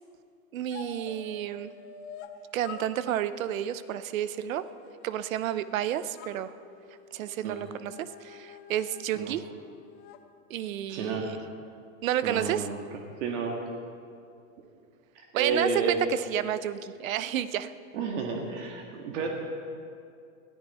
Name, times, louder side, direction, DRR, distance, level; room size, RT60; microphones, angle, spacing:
voice 1, 0.5-1.7 2.5-4.6 5.0-6.5 7.1-9.5 10.5-11.4 12.0-12.7 15.3-17.7, right 11 dB, 75° right, 14 dB, 0.9 m, -31 dB
sound 1, 0.7-2.3 2.6-5.7 6.1-10.2, left 7 dB, 35° left, 0.9 m, -48 dB
voice 2, 10.9-11.3 12.2-12.8 13.2-13.6 15.2-16.0 17.9-19.3, right 5 dB, 60° right, 1 dB, 2.0 m, -31 dB
21.0 x 14.0 x 4.3 m, 2.4 s
supercardioid pair, 145°, 41 cm